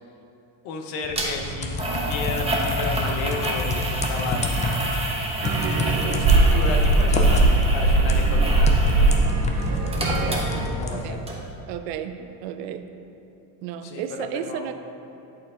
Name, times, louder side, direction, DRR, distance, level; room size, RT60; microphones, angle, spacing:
voice 1, 0.6-4.8 6.1-9.2 9.5-11.3 13.8-14.7, left 3 dB, 70° left, 3 dB, 1.0 m, -34 dB
sound 1, 1.0-11.1, left 1 dB, 15° left, 0.4 m, -29 dB
sound 2, 1.1-1.3 1.8-9.2 9.5-11.0 11.3-11.4, right 1 dB, 10° right, 0.8 m, -29 dB
sound 3, 5.4-10.7, right 2 dB, 45° right, 0.7 m, -20 dB
voice 2, 10.9-11.2 11.7-12.8 13.6-14.7, right 9 dB, 85° right, 9 dB, 0.6 m, -33 dB
10.5 x 4.6 x 2.5 m, 2.8 s
supercardioid pair, 110°, 49 cm